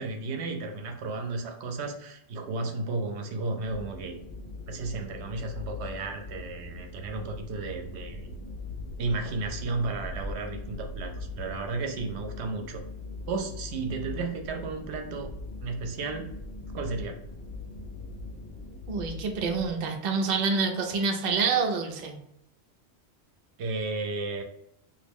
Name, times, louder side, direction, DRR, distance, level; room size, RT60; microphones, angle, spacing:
voice 1, 0.0-4.2 4.7-8.3 9.0-12.8 13.3-15.3 15.6-16.3 16.7-17.2 23.6-24.4, right 3 dB, 75° right, 4 dB, 0.8 m, -33 dB
sound 1, 3.6-19.7, left 2 dB, 70° left, 0.9 m, -40 dB
voice 2, 18.9-22.2, right 4 dB, 55° right, 3 dB, 0.6 m, -27 dB
3.0 x 2.4 x 3.5 m, 0.76 s
omnidirectional pair, 1.1 m